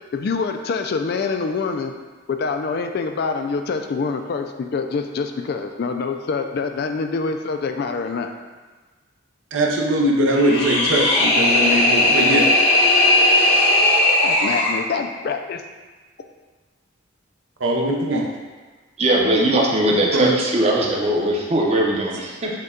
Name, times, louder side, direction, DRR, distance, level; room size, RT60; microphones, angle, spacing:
voice 1, 0.1-1.9 2.3-8.3 14.2-15.6, left 4 dB, 50° left, 5 dB, 0.3 m, -25 dB
voice 2, 9.5-12.5 17.6-18.3 20.1-20.3, right 1 dB, 75° right, 0 dB, 0.7 m, -20 dB
sound 1, 10.3-14.8, left 1 dB, 90° left, 1.1 m, -17 dB
voice 3, 19.0-22.5, right 1 dB, 30° right, -2 dB, 0.7 m, -19 dB
6.4 x 2.3 x 3.6 m, 1.3 s
head